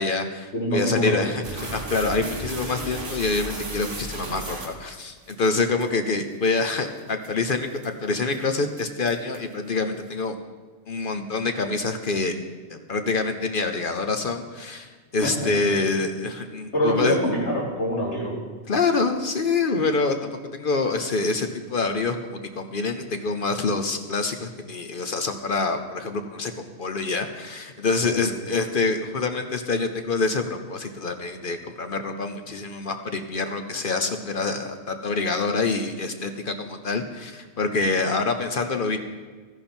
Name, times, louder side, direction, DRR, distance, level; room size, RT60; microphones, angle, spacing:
voice 1, 0.0-10.3 10.9-12.4 12.7-17.2 18.7-39.0, left 3 dB, 50° left, 7 dB, 0.9 m, -26 dB
voice 2, 0.5-1.2 15.2-15.5 16.7-18.4 28.0-28.2, left 1 dB, 65° left, -4 dB, 3.3 m, -25 dB
sound 1, 1.4-5.3 5.8-5.9 6.5-6.6 7.0-7.3 7.8-8.0 8.3-8.4 8.8-9.5, right 2 dB, 45° right, 1.8 m, -34 dB
13.5 x 11.0 x 4.4 m, 1.4 s
omnidirectional pair, 1.2 m